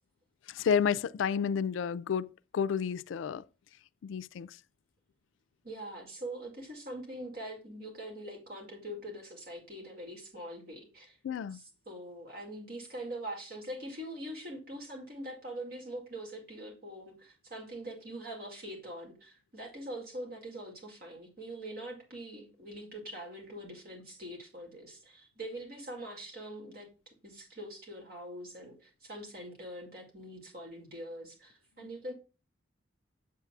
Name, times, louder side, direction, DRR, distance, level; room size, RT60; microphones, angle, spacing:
voice 1, 0.5-3.4 4.0-4.5 11.2-11.6, left 7 dB, 90° left, 0.3 m, -31 dB
voice 2, 5.6-11.2 11.5-26.9 27.2-32.1, right 1 dB, 50° right, 2.1 m, -43 dB
7.3 x 7.2 x 2.3 m
head